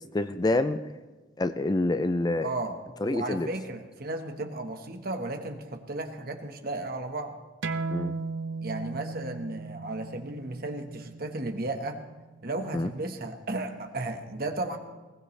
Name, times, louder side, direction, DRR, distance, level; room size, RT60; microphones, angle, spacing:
voice 1, 0.1-0.8 1.4-2.5 3.0-3.5 7.9-8.1 12.7-12.9, left 2 dB, 20° left, 11 dB, 0.4 m, -26 dB
voice 2, 2.4-2.8 3.0-7.4 8.6-12.0 12.4-14.8, right 2 dB, 50° right, 5 dB, 1.4 m, -34 dB
sound 1, 7.6-12.8, right 4 dB, 80° right, 0.7 m, -37 dB
20.0 x 17.5 x 3.3 m, 1.2 s
head